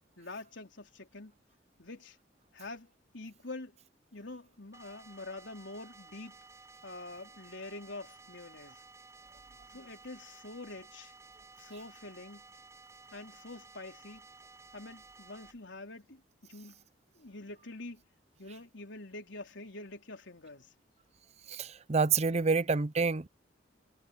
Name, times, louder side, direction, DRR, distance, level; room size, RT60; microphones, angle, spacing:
voice 1, 0.2-1.3 1.8-2.2 2.5-3.8 4.1-6.3 6.8-8.8 9.7-11.1 11.6-12.4 13.1-14.3 14.7-16.8 17.2-18.0 18.4-20.7 22.5-22.6, left 2 dB, 90° left, 3.7 m, -46 dB
sound 1, 4.7-15.5, right 4 dB, 15° right, 5.8 m, -55 dB
voice 2, 21.5-23.3, right 4 dB, 35° right, 0.6 m, -28 dB
head